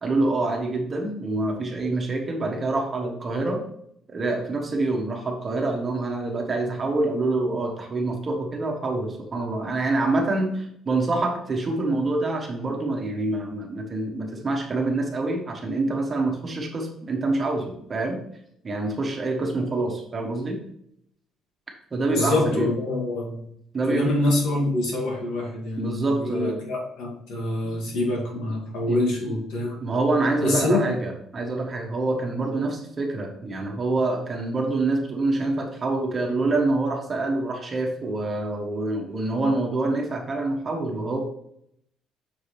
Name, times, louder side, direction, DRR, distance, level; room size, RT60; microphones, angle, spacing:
voice 1, 0.0-3.6 4.1-18.2 18.6-20.6 21.9-22.7 23.7-24.1 25.8-26.6 28.9-29.0 29.8-41.2, right 2 dB, 25° right, 1 dB, 1.1 m, -26 dB
voice 2, 22.1-23.4 23.9-29.8 30.4-30.9, left 2 dB, 85° left, -1 dB, 2.0 m, -25 dB
6.3 x 4.7 x 3.3 m, 0.72 s
cardioid pair, 155°, 0 cm